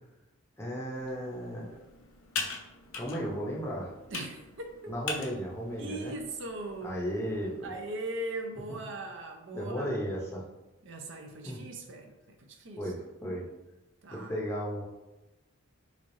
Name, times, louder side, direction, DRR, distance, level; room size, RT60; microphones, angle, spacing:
voice 1, 0.6-1.7 3.0-3.9 4.9-6.1 6.8-7.7 9.5-10.4 11.4-11.6 12.8-13.5 14.1-14.8, equal, 10° left, -4 dB, 0.6 m, -35 dB
Computer keyboard, 0.9-7.7, left 4 dB, 75° left, 0.6 m, -42 dB
voice 2, 4.1-4.9 5.8-7.0 7.6-10.0 10.8-12.9 14.0-14.3, right 2 dB, 60° right, 3 dB, 0.5 m, -39 dB
3.6 x 3.2 x 2.6 m, 1.0 s
head